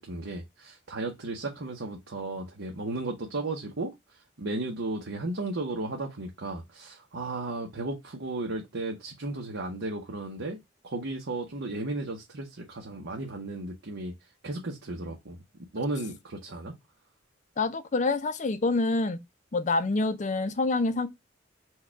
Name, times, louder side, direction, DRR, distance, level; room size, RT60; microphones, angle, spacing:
voice 1, 0.0-10.6 10.8-14.1 14.4-15.4 15.7-16.7, right 2 dB, 75° right, 0.9 m, -34 dB
voice 2, 17.6-19.2 19.5-21.1, left 3 dB, 40° left, 0.5 m, -26 dB
4.5 x 2.3 x 4.5 m
head